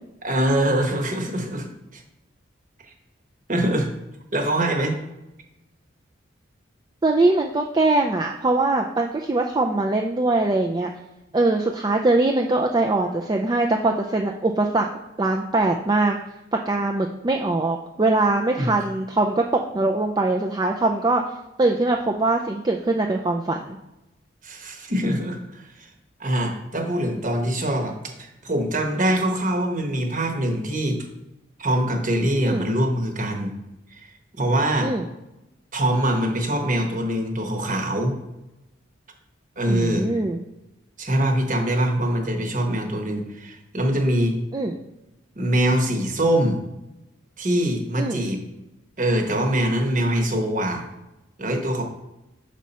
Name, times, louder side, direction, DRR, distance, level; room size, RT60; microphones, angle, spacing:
voice 1, 0.2-2.0 3.5-3.9 4.3-4.9 18.6-18.7 24.4-25.9 26.2-31.1 31.6-33.5 33.9-34.9 35.7-38.1 39.6-40.1 41.0-44.4 45.4-46.6 47.4-48.4 49.0-50.9 51.4-51.8, right 1 dB, 40° right, 3 dB, 1.1 m, -23 dB
voice 2, 7.0-10.9 11.3-14.9 15.2-16.2 16.7-21.2 21.6-23.8 32.4-32.7 34.8-35.0 39.7-40.4 44.5-44.7 48.0-48.2, right 2 dB, 20° right, 2 dB, 0.4 m, -22 dB
6.2 x 5.5 x 4.2 m, 0.96 s
head